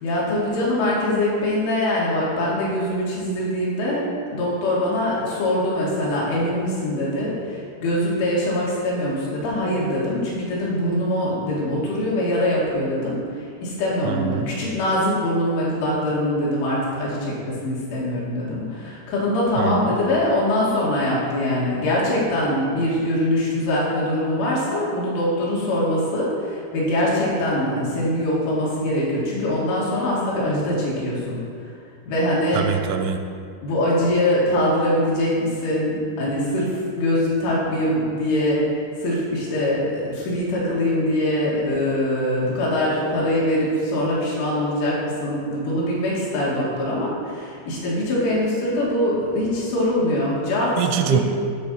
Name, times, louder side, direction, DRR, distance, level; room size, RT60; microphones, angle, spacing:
voice 1, 0.0-31.4 32.1-32.7 33.6-38.6 39.0-50.8 51.1-51.2, left 1 dB, 80° left, -6 dB, 4.5 m, -23 dB
voice 2, 14.0-14.5 19.6-19.9 32.5-33.2 50.8-51.2, right 9 dB, 85° right, 6 dB, 3.0 m, -23 dB
12.0 x 4.1 x 5.6 m, 2.2 s
omnidirectional pair, 5.4 m